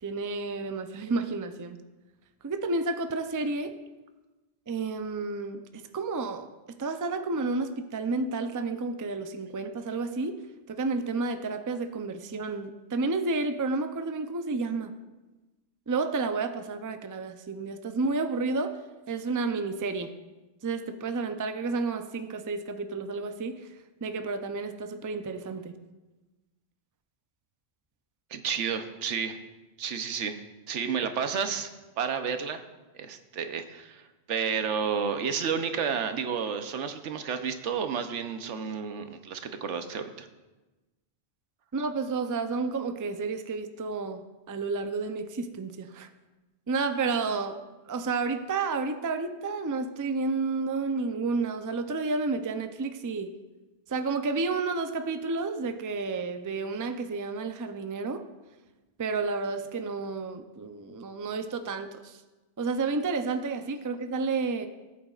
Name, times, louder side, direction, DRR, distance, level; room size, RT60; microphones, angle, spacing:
voice 1, 0.0-1.8 2.4-3.8 4.7-10.4 10.7-14.9 15.9-18.8 19.1-20.1 20.6-23.7 24.0-25.7 41.7-46.1 46.7-47.6 47.9-53.3 53.9-58.2 59.0-62.2 62.6-64.7, right 3 dB, 35° right, 8 dB, 0.3 m, -31 dB
voice 2, 28.3-29.4 29.8-30.4 30.7-31.7 32.0-32.6 32.9-40.3, right 6 dB, 90° right, 8 dB, 1.1 m, -31 dB
18.0 x 8.6 x 2.4 m, 1.1 s
omnidirectional pair, 1.2 m